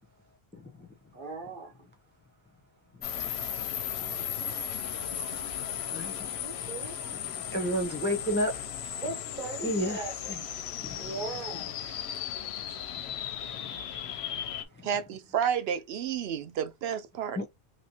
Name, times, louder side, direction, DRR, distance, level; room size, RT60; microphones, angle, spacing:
voice 1, 0.6-0.9 3.3-3.4 4.0-4.2 5.9-6.3 7.2-8.5 9.6-10.4 10.8-11.2 13.6-13.8 14.8-14.9 17.4-17.5, equal, 15° left, 0.5 m, -32 dB
voice 2, 1.1-1.7 6.4-7.0 9.0-10.1 10.9-11.7, right 3 dB, 55° right, 1.1 m, -38 dB
sound 1, 3.0-14.6, left 9 dB, 90° left, 0.8 m, -36 dB
voice 3, 14.8-17.5, right 8 dB, 80° right, 0.8 m, -31 dB
2.9 x 2.9 x 2.8 m
omnidirectional pair, 1.0 m